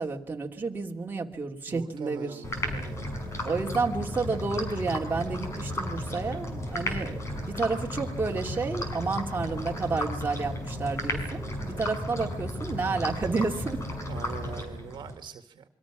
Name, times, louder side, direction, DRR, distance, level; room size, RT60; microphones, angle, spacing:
voice 1, 0.0-2.4 3.4-13.8, right 4 dB, 25° right, 1 dB, 2.7 m, -31 dB
voice 2, 1.7-3.1 11.7-12.1 14.1-15.6, right 7 dB, 65° right, 8 dB, 2.0 m, -43 dB
sound 1, 2.4-15.1, left 1 dB, 35° left, 6.3 m, -34 dB
27.5 x 24.0 x 6.2 m, 0.62 s
cardioid pair, 115°, 8 cm